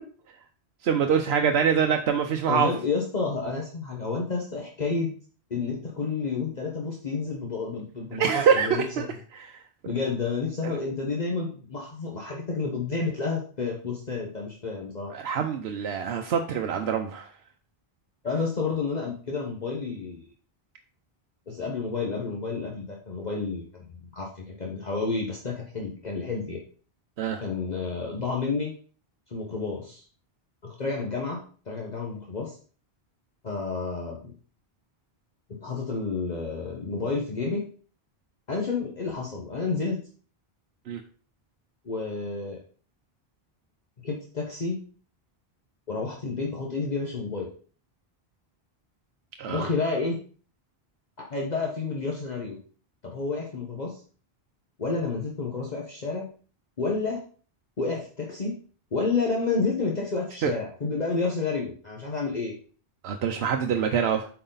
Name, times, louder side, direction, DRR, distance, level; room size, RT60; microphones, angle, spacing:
voice 1, 0.8-2.7 8.2-9.1 9.3-9.6 15.1-17.3 27.2-27.4 40.9-41.0 49.4-49.7 60.4-60.5 63.0-64.3, right 7 dB, 85° right, 4 dB, 0.9 m, -25 dB
voice 2, 2.5-5.1 5.5-9.0 9.8-15.1 18.2-20.2 21.5-26.6 27.4-28.7 29.3-30.0 30.6-31.4 31.7-32.6 33.4-34.3 35.5-37.6 38.5-40.0 41.8-42.6 44.0-44.8 45.9-47.5 49.4-50.2 51.2-52.6 53.0-54.0 54.8-56.3 56.8-57.2 57.8-58.5 58.9-62.5, left 4 dB, 45° left, -1 dB, 1.2 m, -30 dB
8.1 x 4.6 x 3.9 m, 0.41 s
omnidirectional pair, 1.0 m